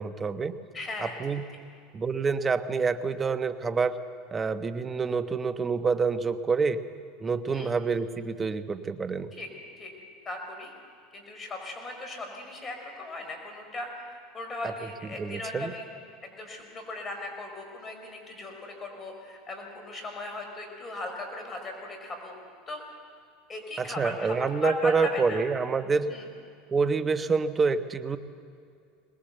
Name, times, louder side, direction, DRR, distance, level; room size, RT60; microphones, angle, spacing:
voice 1, 0.0-0.6 1.0-1.4 1.9-4.0 4.3-6.8 7.2-9.3 14.6-14.7 15.2-15.7 23.8-26.1 26.7-28.2, right 4 dB, 25° right, 11 dB, 1.2 m, -27 dB
voice 2, 0.7-1.1 7.5-7.7 9.3-9.5 9.8-9.9 10.2-10.7 11.1-15.9 16.2-22.4 22.7-22.8 23.5-24.3 24.6-25.4 26.1-26.2, left 2 dB, 30° left, 3 dB, 5.0 m, -38 dB
22.5 x 20.0 x 8.1 m, 2.4 s
hypercardioid pair, 90°, 0 cm